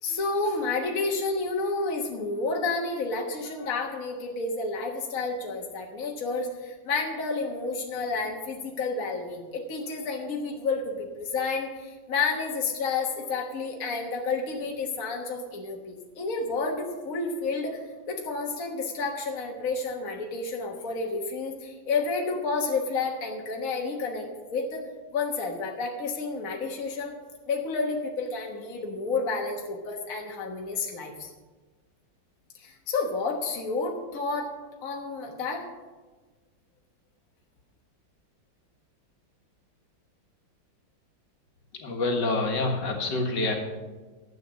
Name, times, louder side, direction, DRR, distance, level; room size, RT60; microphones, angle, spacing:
voice 1, 0.0-27.2 27.5-31.3 32.5-34.5 34.8-35.7, left 3 dB, 50° left, 0 dB, 1.6 m, -30 dB
voice 2, 41.7-43.6, left 2 dB, 65° left, 2 dB, 2.2 m, -27 dB
12.0 x 8.4 x 6.3 m, 1.3 s
omnidirectional pair, 2.1 m